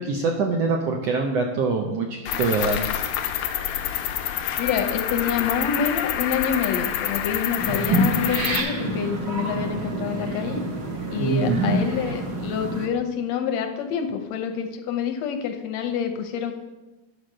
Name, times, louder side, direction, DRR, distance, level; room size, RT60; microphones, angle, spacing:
voice 1, 0.0-2.8 11.2-11.6, right 4 dB, 75° right, 2 dB, 1.5 m, -24 dB
Cricket, 2.3-8.6, left 10 dB, 90° left, 2.3 m, -27 dB
voice 2, 4.6-10.6 11.1-16.5, left 7 dB, 70° left, 6 dB, 1.7 m, -27 dB
sound 1, 7.6-12.9, right 1 dB, 60° right, 1.0 m, -27 dB
10.5 x 4.8 x 6.3 m, 1.1 s
omnidirectional pair, 3.7 m